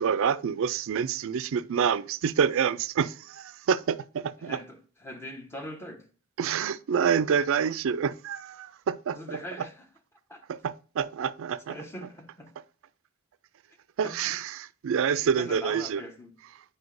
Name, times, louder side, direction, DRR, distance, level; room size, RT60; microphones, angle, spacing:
voice 1, 0.0-4.6 6.4-9.4 10.5-11.8 14.0-16.0, right 7 dB, 65° right, 0.4 m, -27 dB
voice 2, 4.4-6.1 9.1-9.9 10.3-10.4 11.7-12.5 14.0-14.4 15.1-16.3, left 1 dB, 10° left, 0.9 m, -42 dB
7.8 x 5.4 x 2.5 m
head